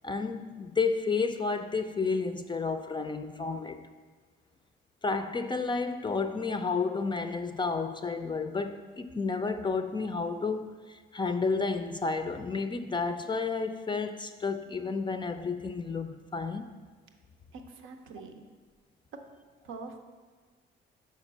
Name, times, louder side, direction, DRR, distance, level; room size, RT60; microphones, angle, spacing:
voice 1, 0.0-3.8 5.0-16.7, left 4 dB, 25° left, 0.4 m, -31 dB
voice 2, 17.5-18.4 19.6-20.0, right 4 dB, 80° right, 0.7 m, -44 dB
5.8 x 4.3 x 6.1 m
cardioid pair, 90°, 20 cm